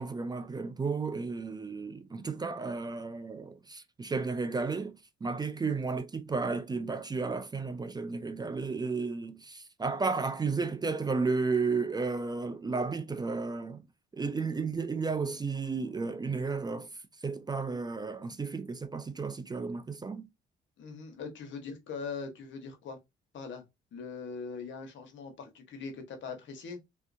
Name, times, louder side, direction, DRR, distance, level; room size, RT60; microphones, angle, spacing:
voice 1, 0.0-13.8 14.1-16.9 17.2-20.3, right 4 dB, 20° right, 0.4 m, -33 dB
voice 2, 20.8-23.0 23.3-23.6 23.9-26.8, left 5 dB, 70° left, 1.1 m, -41 dB
3.3 x 2.7 x 2.6 m
cardioid pair, 90°, 20 cm